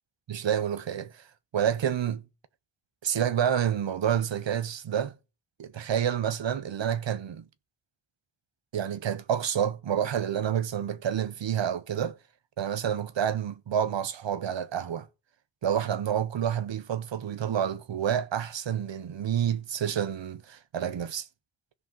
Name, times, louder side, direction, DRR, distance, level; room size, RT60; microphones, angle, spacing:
voice 1, 0.3-1.2 1.5-2.2 3.0-5.2 5.6-7.4 8.7-12.1 12.6-15.1 15.6-21.3, right 9 dB, 75° right, 0.8 m, -28 dB
15.5 x 5.9 x 3.9 m
wide cardioid pair, 75°, 45 cm